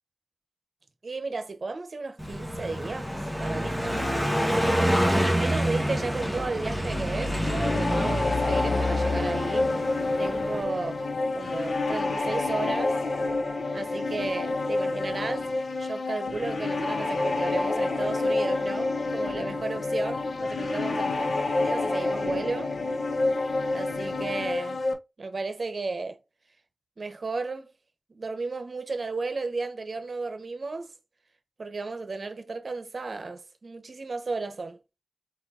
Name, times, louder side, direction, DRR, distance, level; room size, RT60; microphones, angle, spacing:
voice 1, 1.0-3.1 3.4-4.7 5.3-11.0 11.3-13.0 13.7-21.1 21.6-22.7 23.7-24.8 25.2-26.2 27.0-27.7 28.1-30.9 31.6-34.8, right 3 dB, 70° right, 0.9 m, -34 dB
Car passing by, 2.2-10.6, equal, 5° left, 1.5 m, -27 dB
sound 1, 7.3-24.9, left 2 dB, 85° left, 0.8 m, -28 dB
4.5 x 4.4 x 2.5 m
wide cardioid pair, 85°, 0 cm